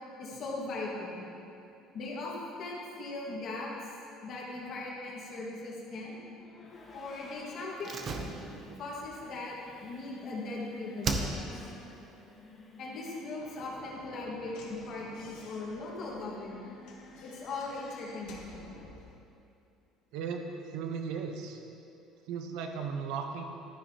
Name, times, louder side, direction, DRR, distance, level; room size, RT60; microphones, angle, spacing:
voice 1, 0.2-1.2 1.9-2.3 2.6-3.9 4.2-6.2 6.9-8.0 8.8-9.6 9.8-11.5 12.8-16.7 17.2-18.8, left 2 dB, 40° left, -3 dB, 1.7 m, -39 dB
sound 1, 6.3-18.1, left 2 dB, 20° left, 0.9 m, -53 dB
Slam, 7.8-10.6 11.0-11.8 12.0-12.1, right 3 dB, 30° right, 0.6 m, -36 dB
Slam / Knock, 13.3-19.2, left 3 dB, 65° left, 1.3 m, -53 dB
voice 2, 20.7-21.6 22.3-23.4, right 6 dB, 65° right, 4 dB, 0.9 m, -36 dB
11.5 x 9.8 x 2.9 m, 2.6 s
cardioid pair, 175°, 0 cm